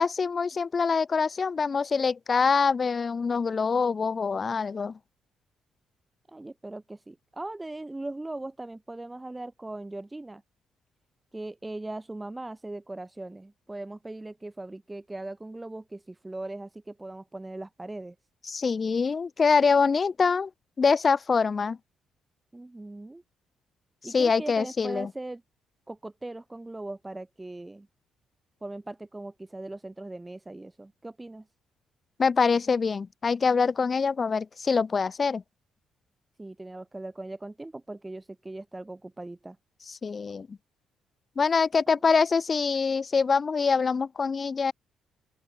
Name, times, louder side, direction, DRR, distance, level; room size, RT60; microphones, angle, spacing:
voice 1, 0.0-5.0 18.5-20.5 20.8-21.8 24.1-25.1 32.2-35.4 40.0-40.6 41.4-44.7, left 5 dB, 35° left, 0.4 m, -24 dB
voice 2, 6.3-10.4 11.3-18.2 22.5-23.2 24.0-25.4 25.9-27.9 28.6-31.5 36.4-39.6 41.9-42.0, right 2 dB, 15° right, 0.7 m, -39 dB
open air
cardioid pair, 90°, 0 cm